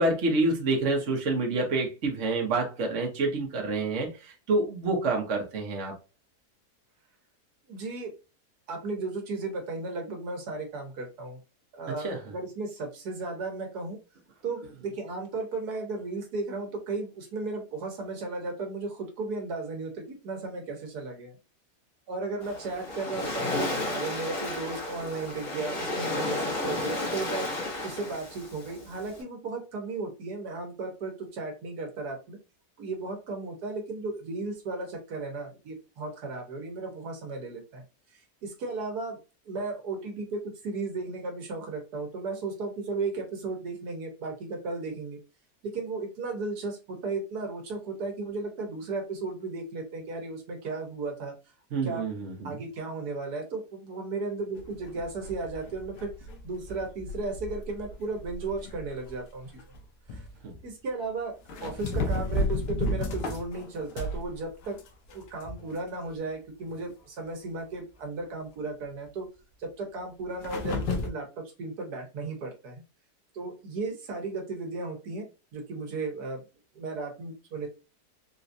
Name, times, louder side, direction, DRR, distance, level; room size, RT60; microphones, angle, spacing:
voice 1, 0.0-5.9 11.9-12.2 51.7-52.6 60.4-60.5, right 2 dB, 55° right, 1.1 m, -28 dB
voice 2, 7.7-8.1 8.7-11.4 11.7-14.0 14.4-21.4 22.1-27.5 27.8-32.4 32.8-37.8 38.1-39.2 39.5-45.2 45.7-51.3 51.8-52.0 52.4-56.1 56.4-59.5 60.1-60.2 60.6-64.8 65.1-69.3 69.6-72.8 73.3-75.2 75.5-76.4 76.7-77.7, right 3 dB, 75° right, 1.5 m, -35 dB
Waves surf, 22.4-29.2, left 2 dB, 55° left, 1.5 m, -33 dB
sound 1, 54.6-59.1 59.6-59.8 60.1-60.6 61.5-64.3 64.6-65.8 66.1-66.2 66.7-66.8 70.4-71.1, left 2 dB, 85° left, 1.3 m, -33 dB
4.0 x 2.3 x 2.6 m
omnidirectional pair, 1.7 m